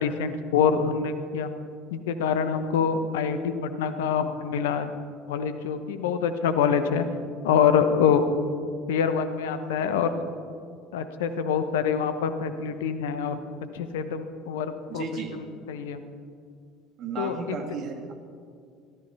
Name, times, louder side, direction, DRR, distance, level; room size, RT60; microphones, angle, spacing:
voice 1, 0.0-1.5 1.9-4.9 5.3-7.0 7.4-8.3 8.9-10.1 10.9-13.4 13.7-15.0 15.7-16.0 17.2-17.6, left 7 dB, 70° left, 10 dB, 1.0 m, -25 dB
voice 2, 14.9-15.4 17.0-18.1, right 5 dB, 50° right, 5 dB, 1.9 m, -34 dB
18.0 x 13.5 x 4.3 m, 2.2 s
figure-of-eight pair, 65°, 0 cm